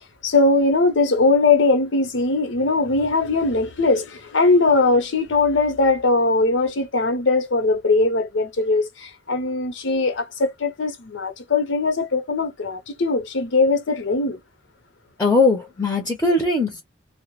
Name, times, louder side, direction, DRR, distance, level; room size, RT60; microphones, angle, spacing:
voice 1, 0.2-14.4, left 3 dB, 75° left, 0.7 m, -20 dB
voice 2, 15.2-16.8, left 3 dB, 10° left, 0.6 m, -19 dB
2.1 x 2.0 x 3.0 m
head